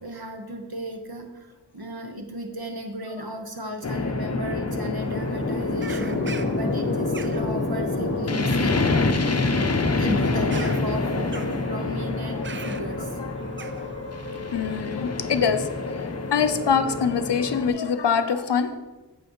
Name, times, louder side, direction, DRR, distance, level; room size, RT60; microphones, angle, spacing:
voice 1, 0.0-8.9 10.0-13.2, equal, 60° right, 4 dB, 1.1 m, -35 dB
sound 1, 3.8-17.7, left 3 dB, 40° left, 0.6 m, -26 dB
Bird vocalization bird call bird song, 5.0-14.8, right 4 dB, 30° right, 0.4 m, -42 dB
voice 2, 14.5-15.7 16.3-18.8, left 6 dB, 80° left, 9 dB, 0.6 m, -24 dB
7.8 x 7.8 x 3.0 m, 1.2 s
wide cardioid pair, 50°, 41 cm